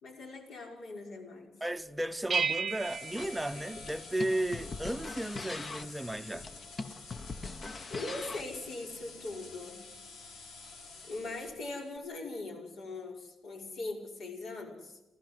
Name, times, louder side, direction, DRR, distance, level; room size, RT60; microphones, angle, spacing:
voice 1, 0.0-1.6 7.9-9.8 11.0-15.0, left 2 dB, 70° left, 5.5 m, -41 dB
voice 2, 1.6-6.5, right 1 dB, 5° right, 0.8 m, -34 dB
sound 1, 2.3-4.5, right 6 dB, 45° right, 0.8 m, -34 dB
sound 2, 2.7-12.0, left 4 dB, 90° left, 3.7 m, -49 dB
sound 3, 3.2-8.6, left 3 dB, 35° left, 1.0 m, -42 dB
30.0 x 14.5 x 7.9 m
cardioid pair, 125°, 0 cm